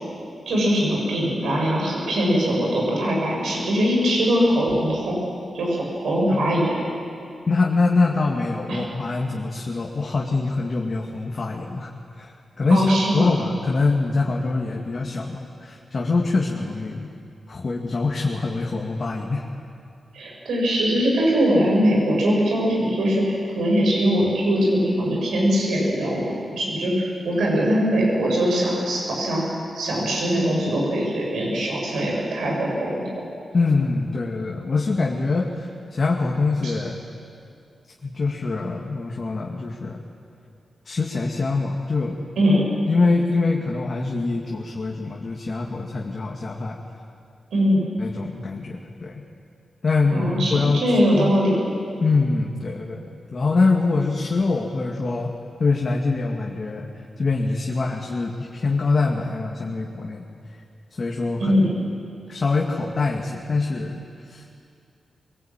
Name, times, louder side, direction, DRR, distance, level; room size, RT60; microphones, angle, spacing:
voice 1, 0.5-5.2 5.5-6.9 8.7-8.8 12.7-13.3 20.1-29.4 29.7-33.1 36.6-36.7 42.4-42.6 47.5-47.9 50.1-51.6 61.4-61.7, equal, 90° right, -2 dB, 7.5 m, -21 dB
voice 2, 7.5-11.9 12.1-17.1 17.5-19.4 33.5-37.0 38.0-40.0 40.9-42.2 42.9-46.8 48.0-49.2 49.8-51.4 52.0-55.3 55.6-56.9 57.2-60.2 61.0-61.6 62.3-64.6, left 3 dB, 45° left, -1 dB, 2.2 m, -24 dB
23.0 x 18.5 x 9.0 m, 2.4 s
cardioid pair, 75°, 0 cm